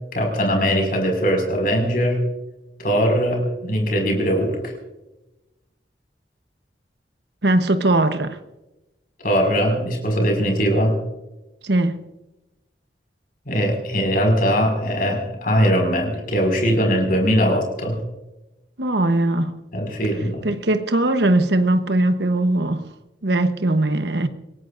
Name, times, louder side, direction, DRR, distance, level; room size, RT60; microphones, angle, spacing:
voice 1, 0.1-2.2 2.8-4.7 9.2-10.9 13.5-18.0 19.7-20.4, equal, 50° left, 5.6 m, -20 dB
voice 2, 7.4-8.4 11.6-12.1 18.8-19.6 20.4-22.9 23.2-24.3, right 2 dB, 70° right, 1.1 m, -20 dB
27.0 x 17.5 x 2.6 m
head